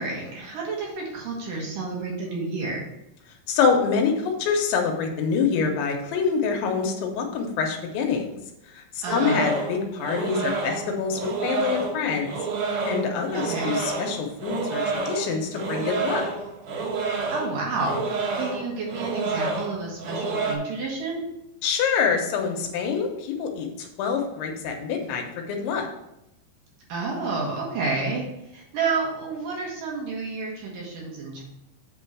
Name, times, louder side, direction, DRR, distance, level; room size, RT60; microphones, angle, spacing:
voice 1, 0.0-2.8 9.0-9.5 13.3-13.7 17.3-21.2 26.9-28.3 28.5-31.4, right 3 dB, 60° right, -3 dB, 2.4 m, -30 dB
voice 2, 3.5-8.4 8.7-12.4 12.8-16.3 21.6-25.9, left 5 dB, 75° left, 3 dB, 3.1 m, -26 dB
sound 1, 9.1-20.5, right 4 dB, 85° right, 1.7 m, -29 dB
8.4 x 3.7 x 5.9 m, 0.86 s
omnidirectional pair, 5.5 m